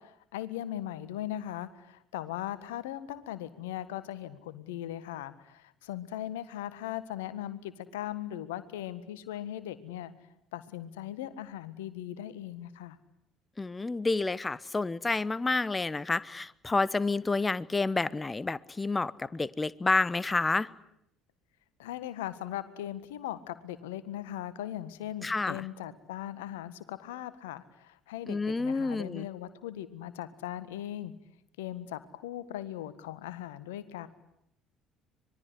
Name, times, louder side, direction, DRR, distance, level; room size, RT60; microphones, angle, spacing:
voice 1, 0.0-10.1 10.5-13.0 21.8-31.1 31.6-34.1, left 12 dB, 70° left, 15 dB, 1.6 m, -39 dB
voice 2, 13.6-20.7 25.2-25.6 28.3-29.3, left 3 dB, 20° left, 20 dB, 1.0 m, -29 dB
25.5 x 22.0 x 9.9 m, 0.77 s
figure-of-eight pair, 55°, 0 cm